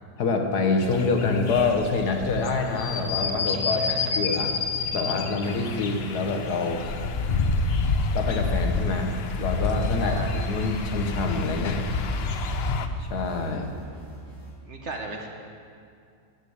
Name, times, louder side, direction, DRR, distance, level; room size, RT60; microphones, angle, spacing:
voice 1, 0.2-3.9 4.2-4.5 4.9-6.8 8.1-11.8 13.0-13.7, left 3 dB, 75° left, 4 dB, 1.6 m, -26 dB
sound 1, 0.8-12.8, left 3 dB, 50° left, 0.7 m, -28 dB
voice 2, 3.7-4.1 10.0-10.3 14.6-15.3, right 3 dB, 50° right, 2 dB, 1.2 m, -36 dB
sound 2, 5.4-12.9, left 7 dB, 90° left, 0.5 m, -40 dB
sound 3, 9.2-14.5, equal, 30° right, 3.3 m, -46 dB
10.5 x 7.0 x 7.9 m, 2.3 s
omnidirectional pair, 1.7 m